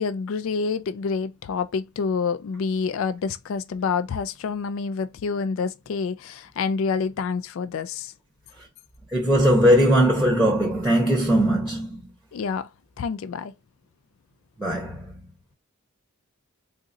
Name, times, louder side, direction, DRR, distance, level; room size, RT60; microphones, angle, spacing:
voice 1, 0.0-8.1 12.3-12.7 13.0-13.5, left 5 dB, 60° left, 0.3 m, -27 dB
voice 2, 9.1-12.1 14.6-15.2, equal, 5° right, 0.8 m, -20 dB
3.9 x 2.5 x 2.5 m
head